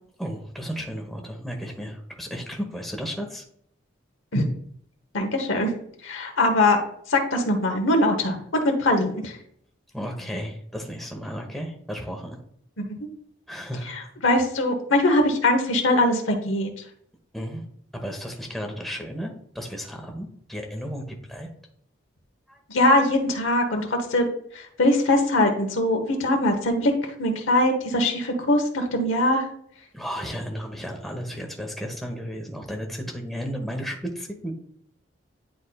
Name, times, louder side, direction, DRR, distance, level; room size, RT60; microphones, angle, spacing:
voice 1, 0.2-3.4 9.9-12.4 13.5-14.0 17.3-17.6 18.0-21.5 22.5-22.6 29.9-34.5, equal, ahead, 2 dB, 1.0 m, -34 dB
voice 2, 5.1-5.7 6.0-6.8 7.1-9.3 12.8-13.1 14.2-16.7 22.7-24.3 24.8-26.9 27.2-29.4, left 1 dB, 90° left, 4 dB, 1.1 m, -21 dB
9.9 x 4.1 x 2.3 m, 0.67 s
head